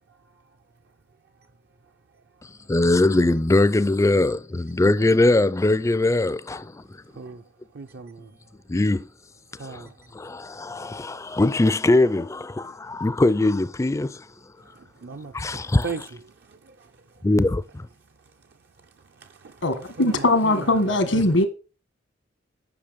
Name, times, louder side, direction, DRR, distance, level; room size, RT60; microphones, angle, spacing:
voice 1, 2.4-6.8 8.7-9.1 9.6-14.3 15.3-15.9 17.2-17.9, left 2 dB, 15° left, 0.4 m, -21 dB
voice 2, 7.1-7.4 7.7-8.3 9.6-10.0 14.6-16.9 19.2-21.4, right 4 dB, 55° right, 0.5 m, -38 dB
voice 3, 19.6-21.5, left 2 dB, 85° left, 1.5 m, -20 dB
8.6 x 5.8 x 5.1 m
head